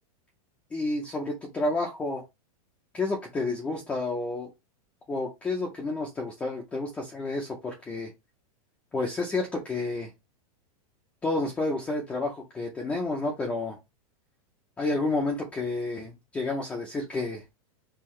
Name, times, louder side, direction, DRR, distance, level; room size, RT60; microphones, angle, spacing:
voice 1, 0.7-2.2 2.9-4.5 5.1-8.1 8.9-10.1 11.2-13.8 14.8-17.4, left 2 dB, 5° left, 0.6 m, -30 dB
5.6 x 2.5 x 3.1 m
supercardioid pair, 180°, 19 cm